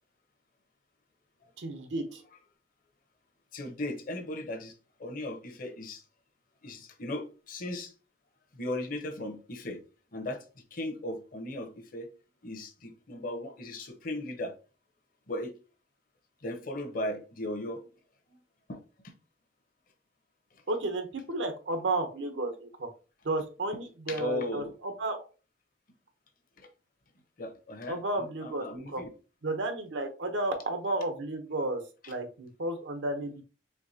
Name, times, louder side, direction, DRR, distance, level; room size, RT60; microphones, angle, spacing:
voice 1, 1.6-2.2 20.7-22.9 23.2-25.3 27.9-29.0 29.4-31.8 32.1-33.4, right 2 dB, 90° right, 0.8 m, -32 dB
voice 2, 3.5-4.7 5.0-6.0 6.6-7.9 8.5-9.8 10.1-10.4 10.7-12.1 12.4-14.6 15.3-15.5 16.4-17.8 18.7-19.1 24.1-24.7 26.6-26.7 27.4-29.1 32.0-32.1, left 1 dB, 50° left, 0.7 m, -37 dB
4.4 x 2.9 x 2.7 m
head